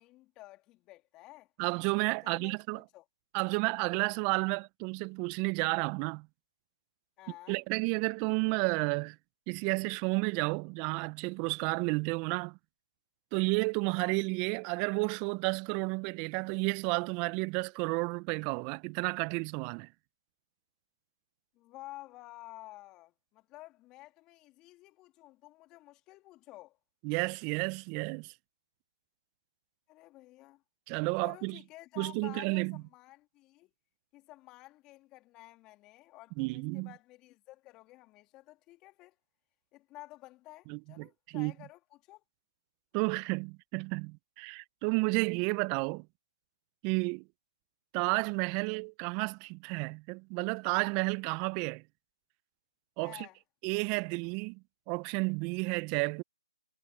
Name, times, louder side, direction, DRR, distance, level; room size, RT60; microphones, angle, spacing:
voice 1, 0.0-1.5 2.2-3.0 7.2-7.6 21.5-26.8 29.9-30.6 31.2-33.7 34.1-39.2 39.7-42.2 53.0-53.4, left 18 dB, 20° left, 3.0 m, -52 dB
voice 2, 1.6-2.8 3.3-6.3 7.5-9.2 9.5-12.6 13.3-19.9 27.0-28.3 30.9-31.6 32.0-32.8 36.4-36.9 40.7-41.1 41.3-41.5 42.9-46.1 46.8-47.2 47.9-51.8 53.0-53.3 53.6-54.6 54.9-56.2, right 31 dB, 20° right, 0.7 m, -31 dB
figure-of-eight pair, 150°, 3 cm